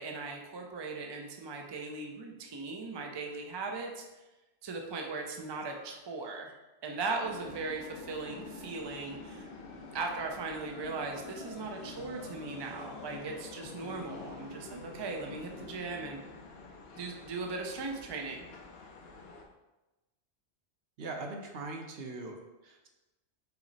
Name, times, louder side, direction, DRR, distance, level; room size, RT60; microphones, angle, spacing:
voice 1, 0.0-4.0 4.6-6.5 6.8-9.5 9.9-16.2 17.0-18.5, right 3 dB, 45° right, 2 dB, 0.3 m, -38 dB
sound 1, 7.2-19.4, left 3 dB, 75° left, 0.9 m, -47 dB
voice 2, 21.0-22.9, right 3 dB, 65° right, 2 dB, 0.9 m, -41 dB
5.7 x 2.0 x 3.9 m, 1.1 s
omnidirectional pair, 1.1 m